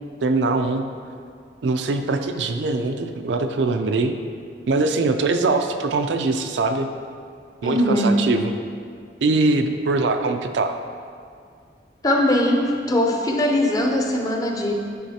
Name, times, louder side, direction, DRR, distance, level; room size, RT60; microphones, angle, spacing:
voice 1, 0.2-0.8 1.6-4.2 4.7-6.9 7.6-8.5 9.2-10.8, right 3 dB, 80° right, 6 dB, 0.4 m, -22 dB
voice 2, 7.6-8.2 12.0-14.7, left 1 dB, 20° left, 1 dB, 0.5 m, -20 dB
9.1 x 3.9 x 2.8 m, 2.2 s
head